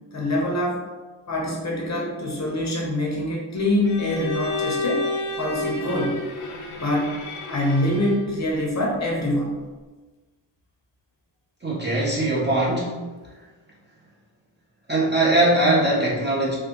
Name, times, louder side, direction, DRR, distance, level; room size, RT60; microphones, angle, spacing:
voice 1, 0.1-0.8 1.3-5.1 5.4-6.2 6.8-7.1 7.5-9.6, left 1 dB, 35° left, -2 dB, 0.7 m, -24 dB
Bowed string instrument, 3.8-8.4, left 3 dB, 75° left, 0.8 m, -30 dB
voice 2, 11.6-13.3 14.9-16.6, right 1 dB, 20° right, -5 dB, 0.5 m, -21 dB
3.4 x 2.3 x 2.8 m, 1.3 s
wide cardioid pair, 120°, 49 cm